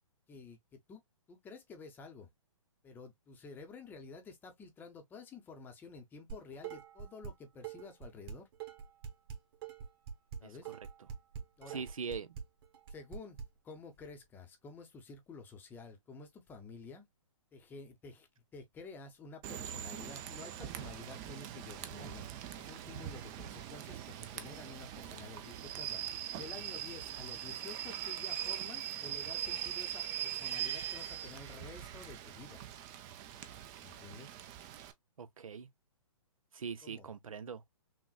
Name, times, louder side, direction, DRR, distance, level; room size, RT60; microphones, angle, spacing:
voice 1, 0.3-1.0 1.3-2.3 2.8-8.5 10.4-10.7 11.6-11.8 12.9-13.4 13.6-17.1 17.5-22.2 22.6-32.6 33.8-34.3 36.8-37.1, left 4 dB, 10° left, 0.7 m, -51 dB
Dishes pots and pans, 6.3-7.3 7.6-13.4, right 7 dB, 45° right, 1.6 m, -44 dB
voice 2, 11.7-12.3 35.2-35.7 36.5-37.6, right 6 dB, 85° right, 0.7 m, -41 dB
Rain / Train, 19.4-34.9, right 11 dB, 20° right, 0.4 m, -42 dB
6.0 x 2.2 x 2.3 m
hypercardioid pair, 150°, 17 cm